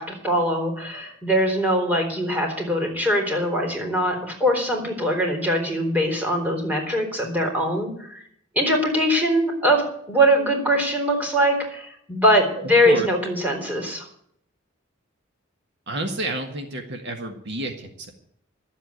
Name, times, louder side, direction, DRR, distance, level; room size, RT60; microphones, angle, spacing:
voice 1, 0.0-8.2 8.6-9.8 10.1-14.0, equal, 10° right, 1 dB, 3.6 m, -22 dB
voice 2, 12.6-13.1 15.9-18.1, right 1 dB, 60° right, 5 dB, 1.6 m, -30 dB
12.5 x 7.8 x 9.6 m, 0.67 s
head